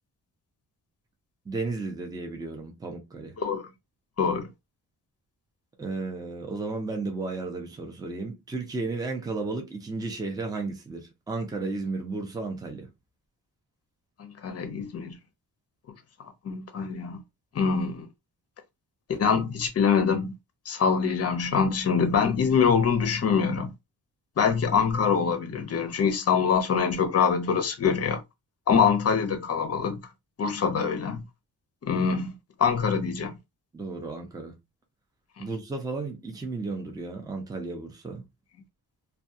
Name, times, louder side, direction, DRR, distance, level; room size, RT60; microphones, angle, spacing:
voice 1, 1.5-3.3 5.8-12.9 33.7-34.6 35.4-38.3, right 3 dB, 10° right, 0.5 m, -33 dB
voice 2, 4.2-4.5 14.2-15.1 16.4-17.2 17.5-18.1 19.2-20.3 20.7-23.7 24.4-28.2 28.7-30.0 30.4-31.2 31.8-33.3 35.4-35.5, left 6 dB, 40° left, 0.6 m, -24 dB
2.3 x 2.2 x 2.6 m
wide cardioid pair, 145°, 39 cm